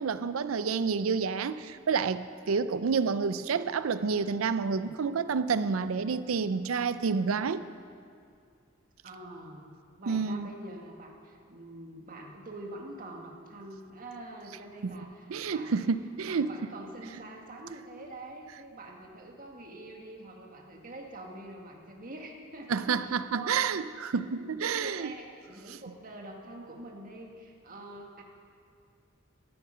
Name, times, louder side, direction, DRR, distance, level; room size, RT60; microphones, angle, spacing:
voice 1, 0.0-7.6 10.1-10.5 14.8-15.0 15.3-16.6 22.7-25.1 25.7-25.8, right 5 dB, 80° right, 13 dB, 0.5 m, -29 dB
voice 2, 9.0-9.7 10.0-15.9 16.3-23.5 24.1-28.2, right 2 dB, 45° right, 1 dB, 1.8 m, -45 dB
14.0 x 13.0 x 5.6 m, 2.4 s
head